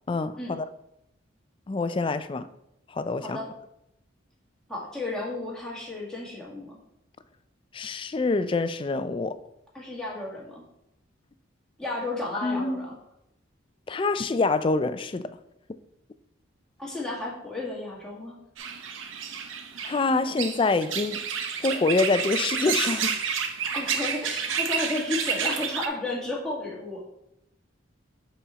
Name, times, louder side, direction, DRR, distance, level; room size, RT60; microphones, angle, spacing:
voice 1, 0.1-0.7 1.7-2.5 2.9-3.4 7.7-9.4 12.4-12.9 13.9-15.4 19.8-21.2 21.6-23.2, left 3 dB, 25° left, 0.3 m, -26 dB
voice 2, 4.7-6.8 9.7-10.6 11.8-12.9 16.8-18.4 23.7-27.0, left 2 dB, 5° left, 1.7 m, -33 dB
sound 1, 18.6-25.9, right 7 dB, 80° right, 0.8 m, -30 dB
7.6 x 4.2 x 4.1 m
head